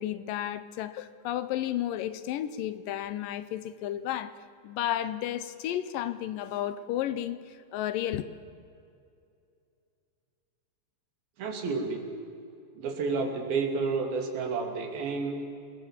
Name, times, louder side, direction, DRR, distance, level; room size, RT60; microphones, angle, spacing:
voice 1, 0.0-4.3 4.6-8.2, left 12 dB, 75° left, 13 dB, 2.3 m, -32 dB
voice 2, 11.4-12.1 12.8-15.4, right 4 dB, 85° right, 3 dB, 4.6 m, -30 dB
28.0 x 20.5 x 7.4 m, 2.5 s
omnidirectional pair, 4.1 m